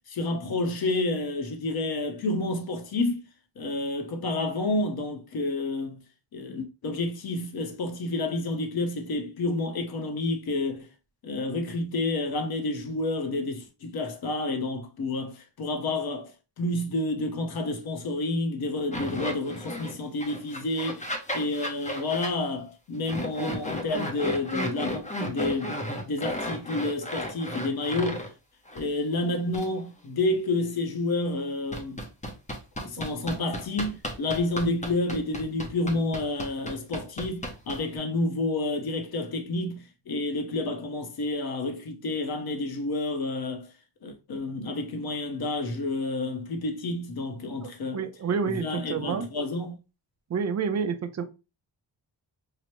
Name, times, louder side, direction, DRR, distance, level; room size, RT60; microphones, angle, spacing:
voice 1, 0.0-3.3 3.6-6.0 6.3-10.9 11.2-25.8 26.1-28.3 28.7-32.0 32.8-43.7 44.0-48.0 48.5-49.7, left 2 dB, 55° left, 0.8 m, -29 dB
sound 1, 18.9-19.9 20.2-22.3 23.0-28.3 28.7-28.8 29.5-29.7 31.7-38.0, equal, 15° left, 0.6 m, -34 dB
voice 2, 47.6-49.3 50.3-51.2, right 6 dB, 40° right, 0.5 m, -29 dB
4.8 x 2.0 x 3.0 m
wide cardioid pair, 135°, 44 cm